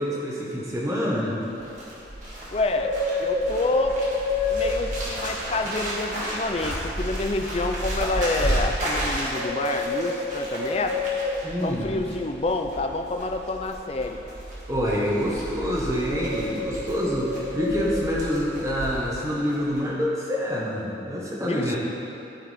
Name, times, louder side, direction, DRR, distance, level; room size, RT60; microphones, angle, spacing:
voice 1, 0.0-1.4 11.4-12.0 14.7-21.8, equal, 15° right, -5 dB, 1.2 m, -26 dB
Bird, 1.4-19.3 19.5-19.8, left 1 dB, 40° right, 1.7 m, -30 dB
voice 2, 2.5-2.9 3.2-4.0 4.5-11.0 11.6-14.2 21.4-21.8, left 2 dB, 35° left, 5 dB, 0.4 m, -28 dB
13.0 x 4.7 x 3.5 m, 2.8 s
head